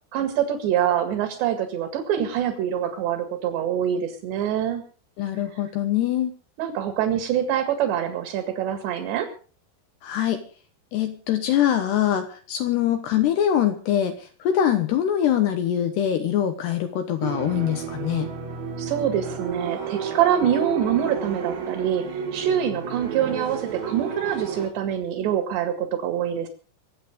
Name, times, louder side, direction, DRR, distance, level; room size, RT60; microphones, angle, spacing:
voice 1, 0.1-4.8 6.6-9.3 18.8-26.5, right 9 dB, 65° right, 7 dB, 3.8 m, -25 dB
voice 2, 5.2-6.3 10.0-10.4 10.9-18.3, left 10 dB, 70° left, 7 dB, 2.8 m, -23 dB
sound 1, 17.2-24.7, right 6 dB, 85° right, 6.3 m, -31 dB
24.5 x 8.4 x 5.2 m, 0.39 s
omnidirectional pair, 5.9 m